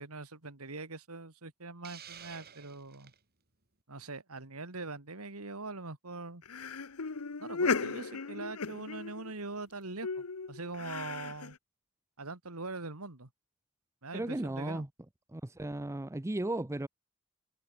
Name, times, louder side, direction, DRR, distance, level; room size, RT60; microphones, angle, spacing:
voice 1, 0.0-3.1 3.9-6.4 7.4-11.6 12.2-13.3 14.0-14.9, right 3 dB, 80° right, 2.7 m, -42 dB
Hiss, 1.8-3.2, right 8 dB, 45° right, 7.4 m, -50 dB
sound 1, 6.4-9.4 10.0-11.6, left 5 dB, 80° left, 1.0 m, -36 dB
voice 2, 14.1-14.9 15.3-16.9, right 1 dB, 15° right, 0.6 m, -35 dB
head